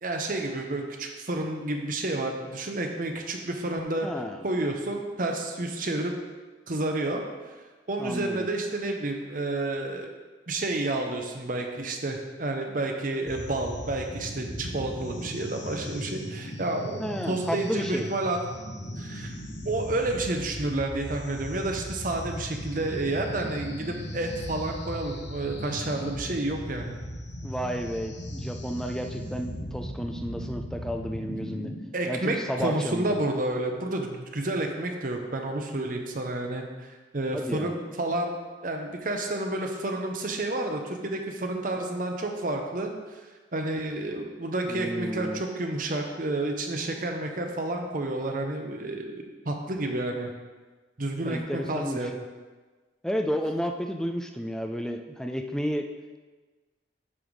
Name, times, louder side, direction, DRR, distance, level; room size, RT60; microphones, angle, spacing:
voice 1, 0.0-4.1 4.4-6.1 6.7-7.2 7.9-10.1 10.5-18.4 19.0-19.3 19.6-27.0 31.9-43.2 43.5-50.3 51.0-52.1, right 2 dB, 45° right, 3 dB, 0.8 m, -30 dB
voice 2, 4.0-4.5 8.0-8.5 17.0-18.1 27.4-31.7 32.1-33.1 37.3-37.7 44.7-45.4 51.2-52.1 53.0-55.9, equal, 5° left, 4 dB, 0.4 m, -32 dB
sound 1, 13.3-31.8, equal, 65° left, 1.1 m, -37 dB
8.7 x 3.5 x 6.2 m, 1.3 s
head